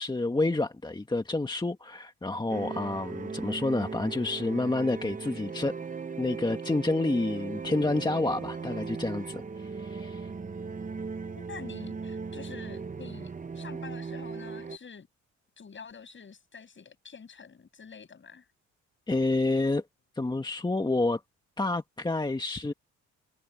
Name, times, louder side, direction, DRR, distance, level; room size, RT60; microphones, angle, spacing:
voice 1, 0.0-5.7 6.2-10.3 19.1-19.8 20.2-21.2 21.6-22.7, left 2 dB, 15° left, 1.9 m, -29 dB
sound 1, 2.5-14.8, right 5 dB, 25° right, 1.1 m, -38 dB
voice 2, 11.3-15.1 15.6-18.4, left 6 dB, 40° left, 7.9 m, -47 dB
cardioid pair, 90°, 30 cm